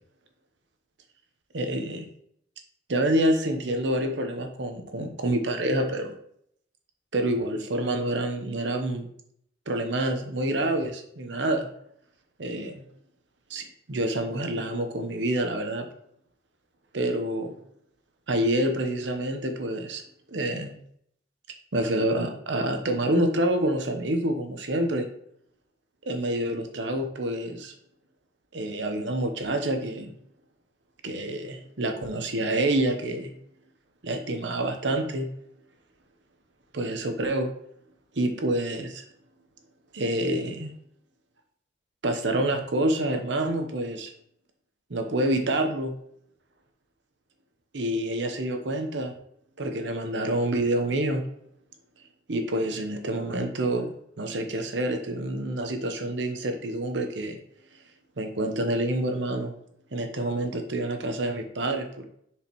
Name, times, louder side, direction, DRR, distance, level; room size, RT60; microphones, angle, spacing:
voice 1, 1.5-2.1 2.9-6.2 7.1-9.1 9.7-11.7 12.4-12.9 13.5-15.9 16.9-17.6 18.3-20.0 20.3-20.8 21.7-25.1 26.1-27.7 28.5-30.1 31.0-33.3 34.0-35.3 36.7-37.5 38.1-39.0 39.9-40.7 42.0-44.1 44.9-45.9 47.7-49.2 49.6-51.2 52.3-53.9 54.2-57.4 58.2-59.5 59.9-62.0, right 1 dB, 70° right, 5 dB, 0.9 m, -27 dB
6.8 x 4.7 x 3.0 m, 0.69 s
head